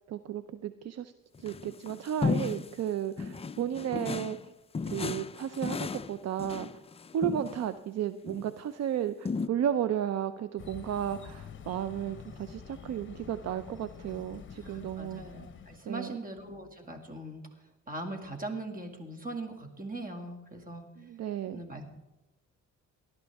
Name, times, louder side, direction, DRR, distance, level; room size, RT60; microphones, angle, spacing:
voice 1, 0.1-1.1 1.4-4.5 4.9-6.7 7.1-15.2 15.9-16.2 21.0-21.6, right 10 dB, 60° right, 12 dB, 0.6 m, -33 dB
sound 1, 1.4-2.8 3.2-4.5 4.7-7.7 8.3-8.5 9.3-9.5, left 4 dB, 20° left, 0.4 m, -34 dB
sound 2, 10.6-15.8, left 7 dB, 40° left, 1.0 m, -47 dB
voice 2, 14.6-17.4 17.9-20.8 21.5-21.9, right 2 dB, 30° right, 4 dB, 2.2 m, -40 dB
18.5 x 11.5 x 3.5 m, 0.99 s
cardioid pair, 90°, 30 cm